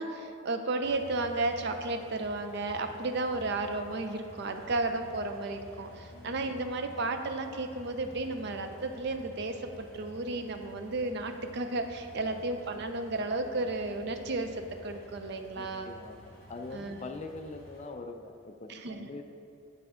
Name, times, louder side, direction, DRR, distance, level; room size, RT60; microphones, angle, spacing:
voice 1, 0.0-15.9 16.7-17.0 18.7-19.1, right 2 dB, 50° right, 6 dB, 0.5 m, -33 dB
sound 1, 0.8-17.9, equal, 10° left, 1.5 m, -52 dB
voice 2, 6.1-6.5 12.3-12.4 15.5-19.2, left 3 dB, 30° left, 6 dB, 0.3 m, -43 dB
9.3 x 3.5 x 4.9 m, 2.7 s
head